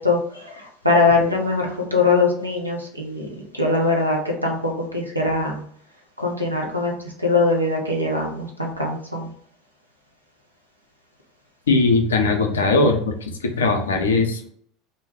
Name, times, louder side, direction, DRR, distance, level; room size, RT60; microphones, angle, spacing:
voice 1, 0.0-3.3 3.5-5.6 6.2-6.9 7.2-9.3, left 3 dB, 90° right, -1 dB, 0.5 m, -22 dB
voice 2, 11.7-14.4, left 3 dB, 75° left, 4 dB, 0.4 m, -19 dB
2.3 x 2.0 x 3.3 m, 0.62 s
figure-of-eight pair, 75°, 0 cm